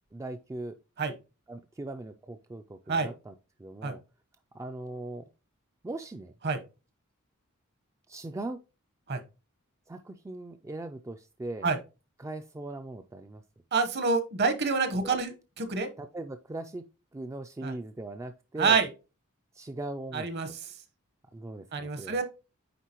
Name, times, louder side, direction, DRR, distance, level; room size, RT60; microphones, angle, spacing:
voice 1, 0.1-0.7 1.5-3.3 3.6-4.0 4.5-5.2 5.8-6.3 8.1-8.6 9.9-11.7 12.2-13.4 15.0-15.2 16.0-16.8 17.1-18.8 19.5-20.3 21.3-22.2, right 2 dB, 15° right, 0.3 m, -39 dB
voice 2, 13.7-15.9 17.6-17.7 18.6-18.9 20.1-20.5 21.7-22.2, right 4 dB, 50° right, 1.0 m, -27 dB
9.3 x 3.7 x 2.9 m
head